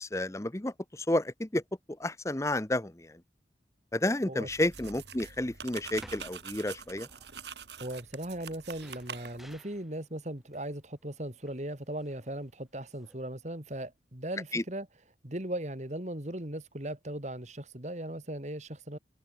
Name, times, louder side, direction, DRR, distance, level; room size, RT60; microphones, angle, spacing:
voice 1, 0.0-1.6 2.0-3.1 3.9-7.1 14.5-14.6, left 1 dB, 15° left, 0.9 m, -31 dB
sound 1, 4.5-9.6, right 6 dB, 75° right, 5.3 m, -45 dB
sound 2, 5.7-13.2, equal, ahead, 3.7 m, -59 dB
voice 2, 7.8-14.9 15.2-19.0, right 1 dB, 40° right, 2.5 m, -38 dB
head